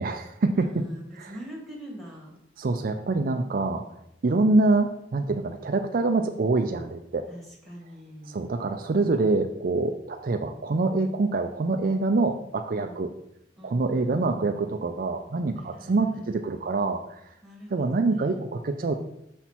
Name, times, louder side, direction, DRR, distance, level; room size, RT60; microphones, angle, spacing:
voice 1, 0.0-0.9 1.1-1.3 2.6-3.8 4.2-7.3 8.3-13.1 13.6-17.2 17.7-18.9, right 3 dB, 50° right, 6 dB, 0.5 m, -25 dB
voice 2, 0.5-2.3 7.3-8.5 12.7-13.0 13.6-14.3 15.5-16.3 17.4-18.5, equal, ahead, -4 dB, 2.3 m, -44 dB
7.0 x 5.8 x 4.4 m, 0.81 s
head